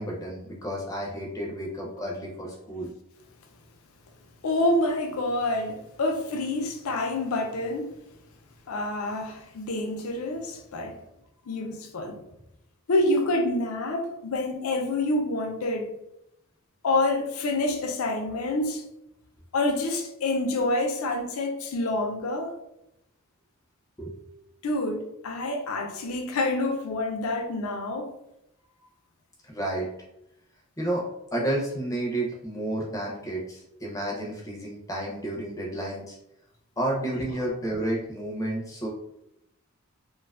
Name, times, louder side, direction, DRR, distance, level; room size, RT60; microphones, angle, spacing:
voice 1, 0.0-2.9 24.0-24.2 29.5-29.9 30.8-31.0 31.3-36.2 36.8-38.9, right 1 dB, 15° left, 0.4 m, -31 dB
voice 2, 4.4-7.9 8.7-11.0 11.5-12.2 12.9-16.0 16.8-18.8 19.5-22.6 24.6-28.1, left 2 dB, 70° left, 0.4 m, -27 dB
2.5 x 2.2 x 2.3 m
head